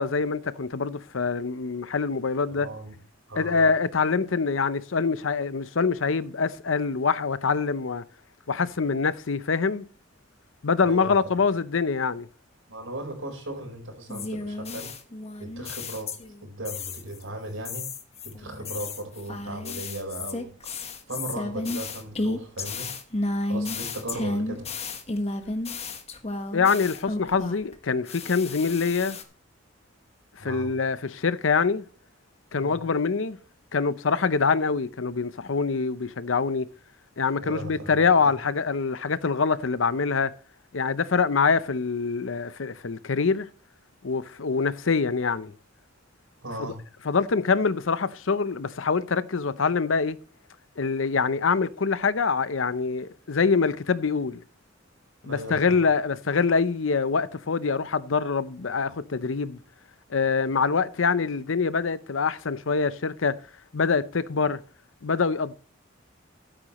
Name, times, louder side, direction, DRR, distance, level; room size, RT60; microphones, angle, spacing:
voice 1, 0.0-2.7 3.4-8.0 8.5-9.9 10.6-12.3 26.5-29.2 30.4-31.8 32.5-33.4 33.7-36.7 37.2-40.3 40.7-43.5 44.0-45.5 46.6-46.7 47.1-50.2 50.8-54.4 55.2-59.6 60.1-63.3 63.7-64.6 65.0-65.5, left 5 dB, 75° left, 0.7 m, -25 dB
voice 2, 2.5-3.0 3.3-3.7 10.8-11.2 12.7-14.9 15.4-16.1 16.4-17.8 18.2-20.7 21.1-22.9 23.4-24.7 30.4-30.7 32.5-32.8 37.4-38.3 46.4-46.8 55.2-55.8, right 1 dB, 85° right, 4.6 m, -37 dB
sound 1, 14.1-16.4 16.6-17.2 17.6-27.7 28.1-29.2, left 2 dB, 35° left, 1.4 m, -32 dB
12.5 x 10.0 x 3.1 m
head